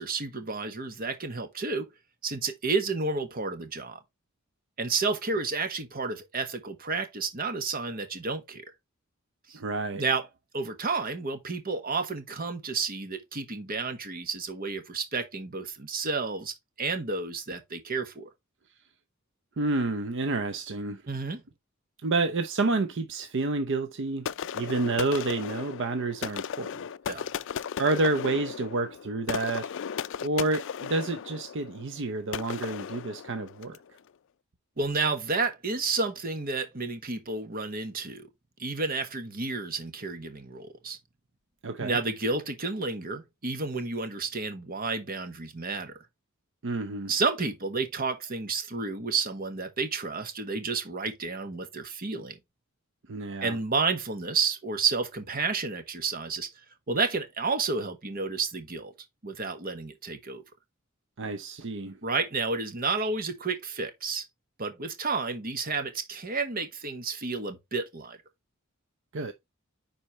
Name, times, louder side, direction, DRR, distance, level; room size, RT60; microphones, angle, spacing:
voice 1, 0.0-1.9 2.2-4.0 4.8-8.6 9.5-9.6 9.9-10.3 10.5-18.3 21.1-21.4 27.1-27.3 34.8-38.3 38.6-41.0 41.8-46.0 47.1-52.4 53.4-56.5 56.9-58.9 59.2-60.4 62.0-64.2 64.6-68.2, right 4 dB, 45° right, 1.3 m, -31 dB
voice 2, 9.5-10.0 19.6-21.0 22.0-24.3 24.5-26.8 27.8-33.8 41.6-42.0 46.6-47.1 53.1-53.6 61.2-62.0 69.1-69.3, right 3 dB, 60° right, 0.7 m, -29 dB
sound 1, 24.2-33.9, left 7 dB, 60° left, 0.4 m, -36 dB
9.9 x 4.3 x 3.0 m
head